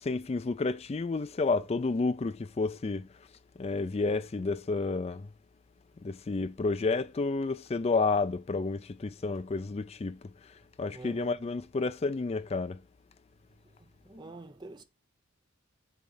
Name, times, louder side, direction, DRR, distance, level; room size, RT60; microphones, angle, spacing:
voice 1, 0.0-3.1 3.6-5.3 6.0-10.2 10.8-12.8, left 3 dB, 30° left, 0.3 m, -30 dB
voice 2, 10.9-11.4 13.8-14.8, right 2 dB, 20° right, 0.7 m, -47 dB
7.2 x 3.2 x 5.6 m
head